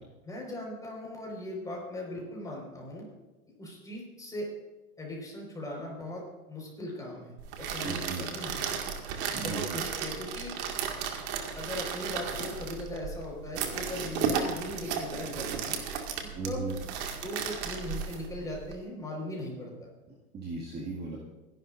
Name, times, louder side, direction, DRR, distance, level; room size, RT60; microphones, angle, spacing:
voice 1, 0.2-3.0 3.6-4.5 5.0-6.2 6.5-8.6 9.3-10.6 11.5-15.8 16.4-16.8 17.2-19.9, left 1 dB, 10° left, -2 dB, 4.8 m, -39 dB
sound 1, 7.4-18.7, right 7 dB, 50° right, 2.1 m, -34 dB
voice 2, 7.8-8.3 9.3-9.6 16.3-16.7 20.3-21.2, right 4 dB, 20° right, -4 dB, 2.1 m, -36 dB
25.5 x 11.5 x 2.6 m, 1.1 s
hypercardioid pair, 135°, 44 cm